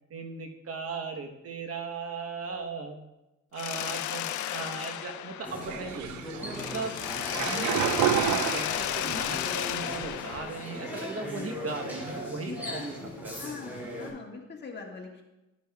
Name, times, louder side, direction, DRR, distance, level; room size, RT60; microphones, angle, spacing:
voice 1, 0.1-3.0 3.5-12.9 13.2-13.5, right 4 dB, 50° right, 5 dB, 1.0 m, -38 dB
Mechanisms, 3.6-6.2 6.5-11.4, left 12 dB, 75° left, 0.5 m, -34 dB
sound 1, 5.4-14.1, left 1 dB, 5° right, 2.6 m, -39 dB
sound 2, 5.6-9.3 9.7-10.4, right 10 dB, 70° right, 0.5 m, -30 dB
voice 2, 12.4-12.9 13.4-15.2, left 4 dB, 35° left, 0 dB, 1.6 m, -41 dB
12.5 x 6.7 x 2.3 m, 0.99 s
cardioid pair, 90°, 30 cm